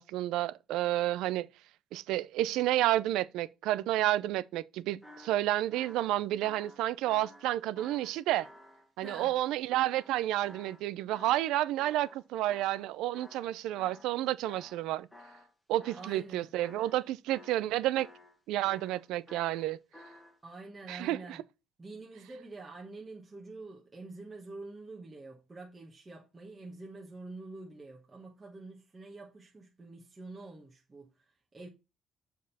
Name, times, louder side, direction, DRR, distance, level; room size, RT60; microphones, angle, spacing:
voice 1, 0.0-1.5 1.9-8.5 9.0-15.1 15.7-18.1 18.5-19.8 20.9-21.4, right 14 dB, 85° right, 0.4 m, -30 dB
sound 1, 5.0-10.8 11.1-14.2 14.4-15.5 15.8-16.3 16.6-18.4 18.6-20.4, left 1 dB, 5° left, 1.4 m, -53 dB
voice 2, 9.0-9.4 15.9-16.5 20.4-21.4 21.8-31.7, right 3 dB, 15° right, 1.1 m, -47 dB
7.3 x 4.4 x 4.1 m
cardioid pair, 150°, 0 cm